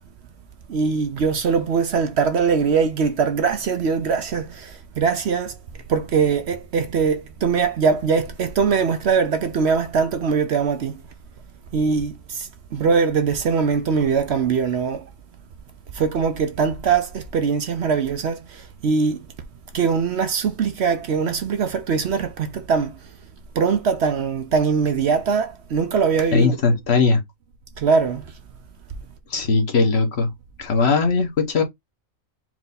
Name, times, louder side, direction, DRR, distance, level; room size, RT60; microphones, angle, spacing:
voice 1, 0.7-5.6 5.9-11.0 11.7-15.1 15.9-19.2 19.7-23.0 23.5-26.6 27.8-28.2, right 5 dB, 60° right, 0.9 m, -22 dB
voice 2, 26.3-27.2 29.3-30.3 30.6-31.6, left 4 dB, 55° left, 1.3 m, -19 dB
4.5 x 2.6 x 3.9 m
omnidirectional pair, 1.4 m